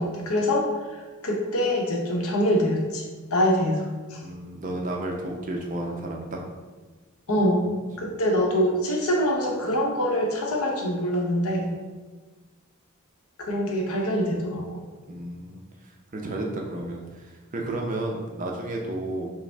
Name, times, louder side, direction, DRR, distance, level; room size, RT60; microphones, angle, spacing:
voice 1, 0.0-3.0 3.3-4.2 7.3-11.7 13.4-14.8, equal, 80° left, 0 dB, 0.7 m, -25 dB
voice 2, 4.2-6.4 15.1-15.6 16.1-19.3, right 1 dB, 35° right, 0 dB, 0.5 m, -32 dB
5.0 x 2.0 x 3.3 m, 1.3 s
head